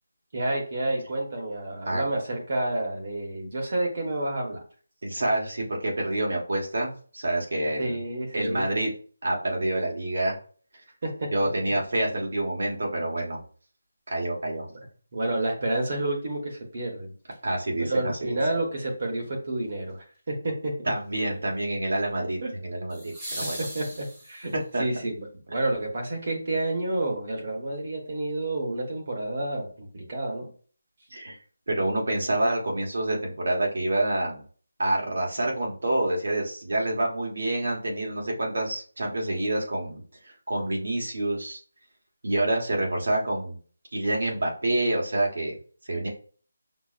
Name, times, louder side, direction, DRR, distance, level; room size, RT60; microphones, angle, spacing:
voice 1, 0.3-4.6 7.8-8.6 11.0-11.5 15.1-17.1 17.9-20.7 22.4-22.5 23.6-24.5 24.8-30.5, right 2 dB, 40° right, 0 dB, 1.1 m, -29 dB
voice 2, 5.0-8.0 8.3-8.9 9.2-10.4 11.3-13.4 14.1-14.7 17.4-18.4 20.9-23.6 24.7-24.8 31.1-31.4 31.7-34.4 34.8-41.6 42.2-43.6 43.9-45.6 45.8-46.1, right 1 dB, 60° right, -1 dB, 1.3 m, -27 dB
sound 1, 17.3-17.4 22.9-24.7 26.9-27.0, equal, 10° right, 0.8 m, -38 dB
6.0 x 2.0 x 2.5 m, 0.42 s
figure-of-eight pair, 175°, 0 cm